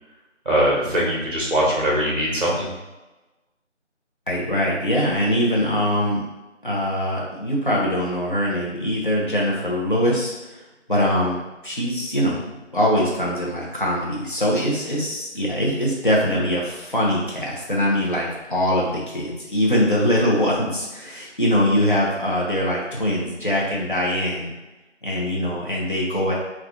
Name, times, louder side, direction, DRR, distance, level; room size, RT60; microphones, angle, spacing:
voice 1, 0.5-2.7, right 1 dB, 45° right, -3 dB, 0.7 m, -21 dB
voice 2, 4.3-6.2 6.6-10.6 10.9-11.3 11.6-12.4 12.7-24.5 25.0-26.3, equal, 45° left, -4 dB, 0.7 m, -22 dB
3.5 x 2.4 x 2.4 m, 1.1 s
figure-of-eight pair, 175°, 37 cm